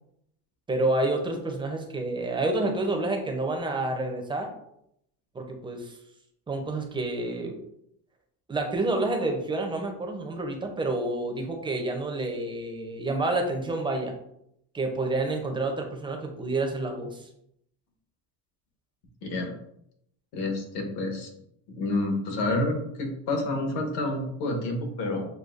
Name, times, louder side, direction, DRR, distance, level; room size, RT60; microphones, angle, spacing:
voice 1, 0.7-4.5 5.3-6.0 6.5-7.6 8.5-14.1 14.7-17.3, right 2 dB, 10° right, 3 dB, 0.5 m, -29 dB
voice 2, 19.2-19.5 20.3-21.3 21.7-25.3, left 2 dB, 70° left, 2 dB, 1.2 m, -29 dB
6.5 x 2.2 x 2.4 m, 0.75 s
cardioid pair, 135°, 41 cm